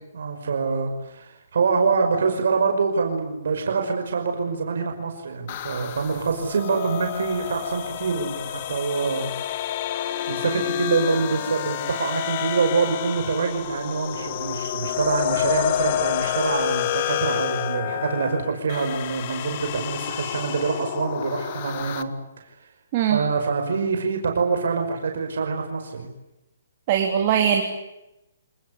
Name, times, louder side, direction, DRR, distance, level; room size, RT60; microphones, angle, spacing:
voice 1, 0.1-9.3 10.3-22.1 23.1-26.1, right 4 dB, 70° right, 4 dB, 5.6 m, -25 dB
sound 1, 5.5-22.0, left 12 dB, 35° left, 1.6 m, -29 dB
voice 2, 26.9-27.6, right 9 dB, 30° right, 2 dB, 3.6 m, -20 dB
28.0 x 20.5 x 9.9 m, 0.90 s
hypercardioid pair, 165°, 0 cm